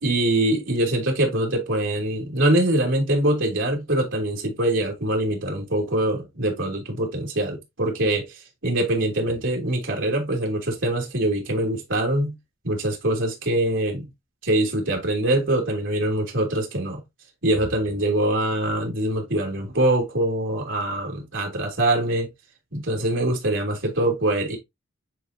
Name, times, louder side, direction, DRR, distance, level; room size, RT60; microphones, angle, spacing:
voice 1, 0.0-8.3 8.6-12.3 12.6-14.1 14.4-17.0 17.4-22.3 22.7-24.6, right 1 dB, 75° right, 2.8 m, -23 dB
9.6 x 3.9 x 2.8 m
head